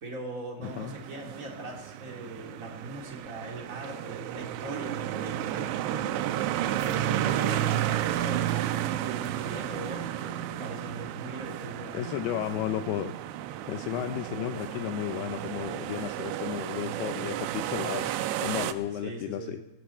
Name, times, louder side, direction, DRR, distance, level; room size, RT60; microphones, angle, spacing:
voice 1, 0.0-6.3 6.8-12.1 14.3-14.4 19.0-19.6, right 2 dB, 25° right, -1 dB, 2.0 m, -40 dB
sound 1, 0.6-18.7, right 12 dB, 85° right, 3.0 m, -32 dB
voice 2, 11.9-13.1 13.7-18.1 18.4-19.6, left 11 dB, 80° left, 9 dB, 2.3 m, -33 dB
18.0 x 16.5 x 4.4 m, 1.0 s
omnidirectional pair, 5.2 m